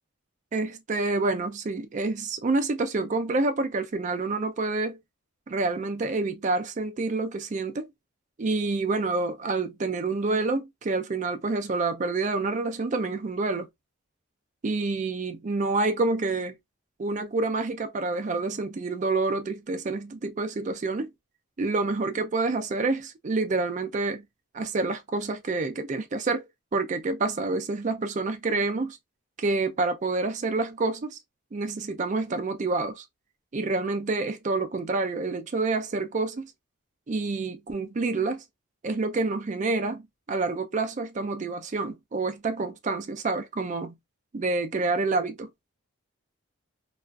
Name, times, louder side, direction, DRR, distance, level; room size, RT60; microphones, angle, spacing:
voice 1, 0.5-5.0 5.5-7.9 8.4-13.7 14.6-16.6 17.0-21.1 21.6-24.2 24.5-26.5 26.7-29.0 29.4-31.2 31.5-33.0 33.5-36.5 37.1-38.4 38.8-44.0 44.3-45.5, right 3 dB, 35° right, 0.3 m, -28 dB
2.3 x 2.3 x 2.3 m
head